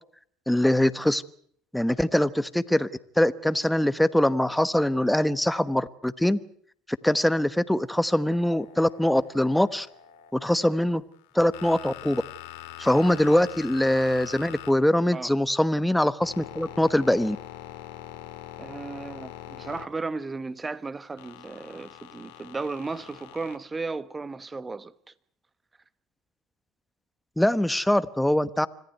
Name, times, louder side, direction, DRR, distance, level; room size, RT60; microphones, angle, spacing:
voice 1, 0.5-1.2 1.7-2.9 3.2-6.4 7.0-9.9 10.3-11.0 11.3-12.2 12.8-17.4 27.4-28.7, left 1 dB, 5° left, 1.1 m, -23 dB
sound 1, 8.3-10.3 11.1-15.4 15.8-20.3 21.2-23.6, left 13 dB, 80° left, 2.3 m, -44 dB
voice 2, 18.6-24.9, right 3 dB, 20° right, 1.3 m, -35 dB
26.0 x 14.5 x 9.2 m
supercardioid pair, 90°, 0 cm